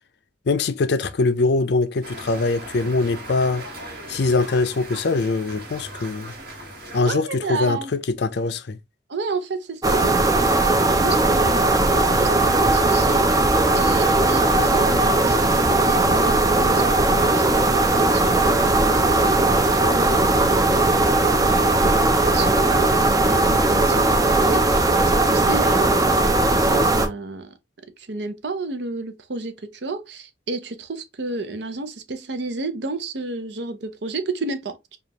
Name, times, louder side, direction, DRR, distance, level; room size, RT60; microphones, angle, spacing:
voice 1, 0.5-3.6 4.1-6.3 6.9-8.8, left 3 dB, 60° left, 0.4 m, -22 dB
sound 1, 2.0-7.0, right 1 dB, 50° right, 1.6 m, -38 dB
voice 2, 7.0-7.9 9.1-27.5 28.0-35.0, right 3 dB, 65° right, 0.7 m, -32 dB
sound 2, 9.8-27.1, right 2 dB, 20° right, 0.4 m, -18 dB
4.9 x 2.4 x 2.8 m
head